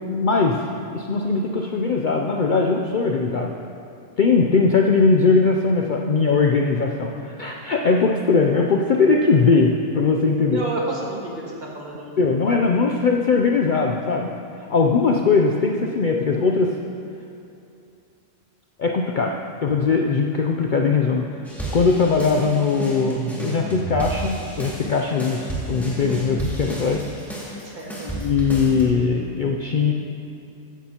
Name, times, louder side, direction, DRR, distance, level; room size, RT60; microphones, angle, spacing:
voice 1, 0.1-0.6 0.9-3.5 4.2-10.6 12.2-14.3 14.7-16.7 18.8-19.4 19.6-21.4 21.7-27.0 28.1-29.9, left 4 dB, 55° left, 1 dB, 0.6 m, -20 dB
voice 2, 10.5-12.1 12.4-12.6 27.6-28.1, right 2 dB, 40° right, -4 dB, 1.7 m, -31 dB
sound 1, 21.5-28.8, right 2 dB, ahead, 2.1 m, -31 dB
14.5 x 10.0 x 2.9 m, 2.6 s
omnidirectional pair, 1.3 m